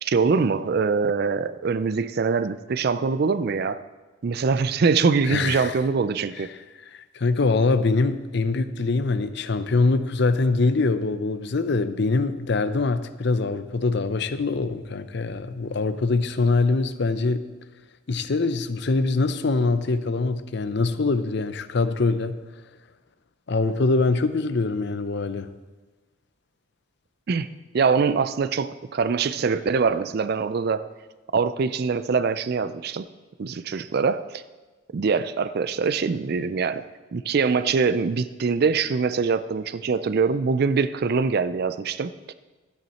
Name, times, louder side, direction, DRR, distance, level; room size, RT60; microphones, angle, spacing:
voice 1, 0.0-3.8 4.2-6.5 27.3-27.5 27.7-30.8 31.3-33.1 33.4-34.4 34.9-36.8 37.1-42.1, right 5 dB, 50° right, 14 dB, 0.4 m, -23 dB
voice 2, 5.3-5.7 6.9-17.5 18.1-22.4 23.5-25.5, left 3 dB, 55° left, 12 dB, 0.5 m, -23 dB
12.0 x 9.3 x 4.2 m, 1.2 s
head